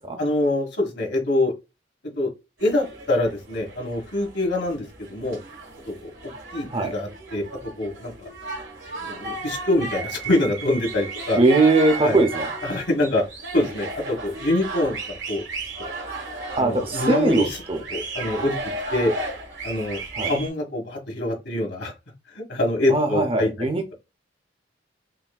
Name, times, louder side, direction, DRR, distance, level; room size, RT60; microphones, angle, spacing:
voice 1, 0.2-1.5 2.1-2.3 2.6-5.4 5.8-6.1 6.5-7.5 7.8-8.3 9.0-11.4 12.0-12.2 12.6-13.2 13.5-15.4 15.8-15.9 16.6-17.6 17.9-18.6 18.9-19.1 19.6-21.9 22.3-23.5, left 1 dB, 65° left, 1.6 m, -25 dB
sound 1, 2.6-20.5, right 3 dB, 80° right, 1.9 m, -34 dB
voice 2, 11.4-12.5 16.6-17.8 20.2-20.3 22.9-23.9, right 2 dB, 30° right, 0.7 m, -20 dB
5.8 x 2.7 x 2.3 m
head